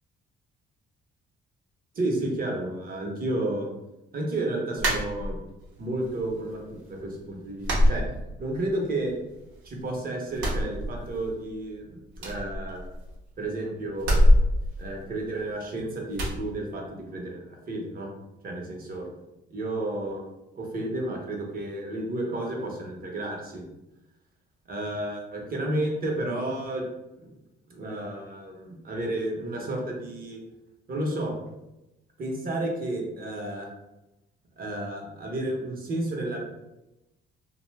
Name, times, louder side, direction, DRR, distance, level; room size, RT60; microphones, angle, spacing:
voice 1, 1.9-3.7 4.1-5.4 5.8-8.0 8.4-9.1 9.6-11.9 12.2-12.8 13.4-14.3 14.8-18.1 18.4-19.1 19.5-20.2 20.5-23.6 24.7-26.8 27.2-27.3 27.7-30.4 30.9-31.3 32.2-33.7 34.6-36.4, right 1 dB, 45° right, 0 dB, 0.8 m, -31 dB
sound 1, 4.8-5.7 6.1-6.8 7.0-7.2 7.6-8.8 9.0-9.9 10.3-11.4 11.7-11.8 12.1-13.3 14.0-15.6 16.1-16.4, equal, 90° right, 0.8 m, -24 dB
2.7 x 2.1 x 3.3 m, 0.96 s
cardioid pair, 90°, 20 cm